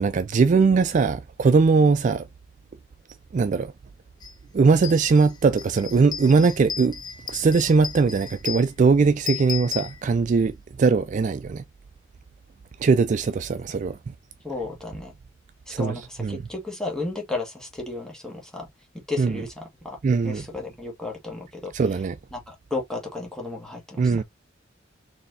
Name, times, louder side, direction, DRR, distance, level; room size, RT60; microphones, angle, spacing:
voice 1, 0.0-2.2 3.3-3.7 4.5-7.0 7.3-11.6 12.8-14.0 15.7-16.4 19.2-19.3 20.0-20.4 21.7-22.1 24.0-24.2, right 4 dB, 40° right, 0.3 m, -20 dB
sound 1, 4.2-4.3 4.7-10.5, left 7 dB, 20° left, 0.6 m, -36 dB
voice 2, 14.4-15.1 15.7-18.7 18.9-20.0 20.2-21.7 22.3-24.2, left 3 dB, 5° left, 1.5 m, -33 dB
4.1 x 3.3 x 2.6 m
head